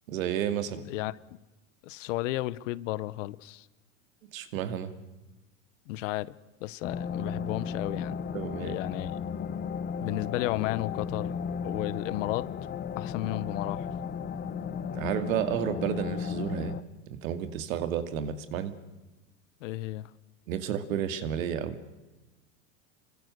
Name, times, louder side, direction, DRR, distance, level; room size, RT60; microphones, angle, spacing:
voice 1, 0.1-0.9 4.3-4.9 8.3-8.8 14.9-16.7 17.1-18.7 20.5-21.8, right 9 dB, 70° right, 2.5 m, -31 dB
voice 2, 1.8-3.7 5.9-6.4 6.6-8.2 8.6-9.1 10.0-11.3 11.6-12.5 13.0-13.9 19.6-20.1, left 17 dB, 65° left, 1.0 m, -33 dB
sound 1, 6.8-16.8, left 6 dB, 25° left, 0.9 m, -35 dB
27.5 x 24.0 x 6.7 m
supercardioid pair, 125°, 41 cm